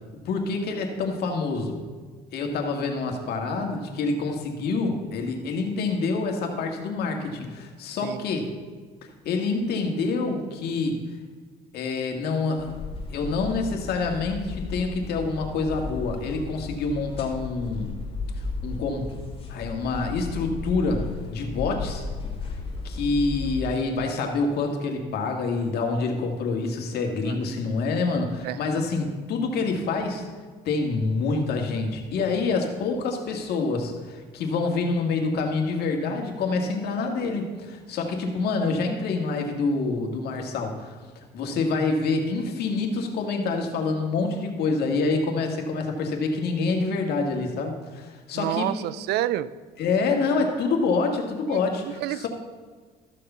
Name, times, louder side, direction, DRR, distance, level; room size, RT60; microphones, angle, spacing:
voice 1, 0.2-1.8 2.3-8.5 9.3-11.0 11.7-12.7 13.1-17.9 18.6-19.2 19.5-21.0 21.3-22.1 22.8-30.2 30.7-41.0 41.3-48.7 49.8-52.3, left 3 dB, 70° left, 3 dB, 2.0 m, -27 dB
voice 2, 8.0-8.5 27.3-27.4 28.4-28.6 48.3-49.5 51.5-52.3, right 14 dB, 80° right, 18 dB, 0.5 m, -29 dB
sound 1, 12.6-23.6, left 3 dB, 35° left, 2.0 m, -35 dB
13.5 x 6.8 x 5.6 m, 1.5 s
cardioid pair, 110°, 17 cm